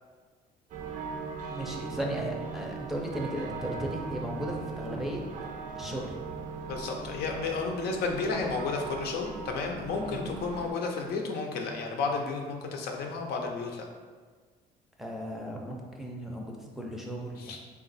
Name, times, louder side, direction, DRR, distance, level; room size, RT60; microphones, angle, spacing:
sound 1, 0.7-10.7, right 4 dB, 50° right, 0.5 m, -39 dB
voice 1, 1.5-5.2 5.7-6.1 10.0-10.4 15.0-17.6, right 1 dB, ahead, -1 dB, 0.5 m, -36 dB
voice 2, 6.7-13.9 17.4-17.6, left 4 dB, 70° left, 1 dB, 0.6 m, -32 dB
3.7 x 2.5 x 4.0 m, 1.5 s
cardioid pair, 110°, 17 cm